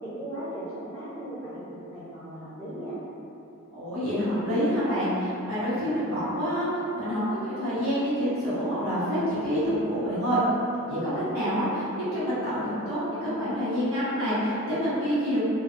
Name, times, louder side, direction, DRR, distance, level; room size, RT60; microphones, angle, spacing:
voice 1, 0.0-3.0, right 1 dB, 10° left, -15 dB, 0.9 m, -37 dB
voice 2, 3.7-6.7 6.9-10.4 10.9-15.4, equal, 80° right, -13 dB, 1.3 m, -27 dB
2.5 x 2.3 x 2.6 m, 2.8 s
head